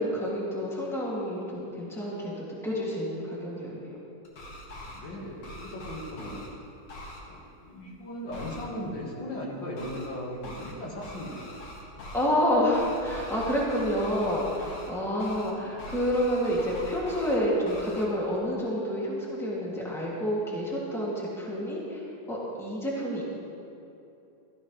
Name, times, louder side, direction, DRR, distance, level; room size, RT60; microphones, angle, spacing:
voice 1, 0.0-3.9 12.1-23.2, equal, ahead, -6 dB, 2.3 m, -29 dB
sound 1, 4.2-5.0 5.4-6.5 6.9-7.2 8.3-8.6 9.8-10.1 10.4-10.7 11.0-12.3 12.7-14.9 15.2-15.5 15.8-17.4 17.7-18.0, equal, 90° left, 2.6 m, -42 dB
voice 2, 4.9-6.4 7.3-11.4, left 1 dB, 65° left, -3 dB, 2.5 m, -37 dB
15.5 x 14.0 x 3.3 m, 2.8 s
omnidirectional pair, 2.2 m